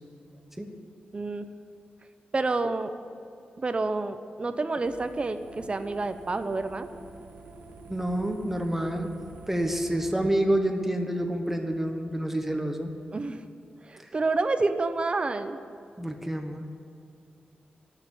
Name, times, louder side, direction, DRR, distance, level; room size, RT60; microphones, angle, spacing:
voice 1, 1.1-1.5 2.3-2.9 3.6-6.9 13.1-13.4 13.9-15.6, right 3 dB, 35° right, 10 dB, 0.7 m, -28 dB
sound 1, 4.8-10.1, right 3 dB, 65° right, 1.4 m, -47 dB
voice 2, 7.9-9.1 9.5-12.9 14.0-14.1 16.0-16.6, right 1 dB, 10° right, 5 dB, 1.2 m, -28 dB
13.5 x 6.8 x 9.9 m, 2.5 s
wide cardioid pair, 125°, 3 cm